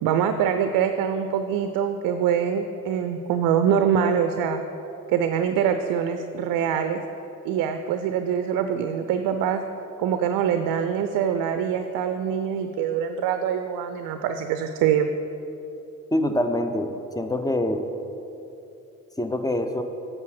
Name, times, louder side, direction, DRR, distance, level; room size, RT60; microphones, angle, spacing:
voice 1, 0.0-4.6 5.1-7.0 7.4-9.6 10.0-15.1, right 8 dB, 50° right, 8 dB, 0.5 m, -24 dB
voice 2, 16.1-17.8 19.2-19.8, left 1 dB, 10° left, 7 dB, 0.6 m, -25 dB
8.2 x 5.2 x 6.4 m, 2.9 s
figure-of-eight pair, 45°, 43 cm